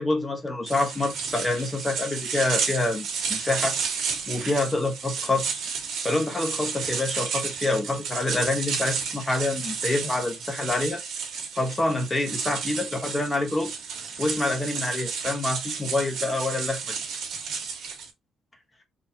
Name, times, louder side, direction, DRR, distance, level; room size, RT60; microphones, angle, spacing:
voice 1, 0.0-3.8 4.3-5.4 6.0-11.0 11.5-13.7 14.2-17.0, left 2 dB, 20° left, 1.3 m, -27 dB
sound 1, 0.7-18.1, right 6 dB, 75° right, 1.4 m, -32 dB
4.2 x 3.2 x 2.8 m
cardioid pair, 90°, 0 cm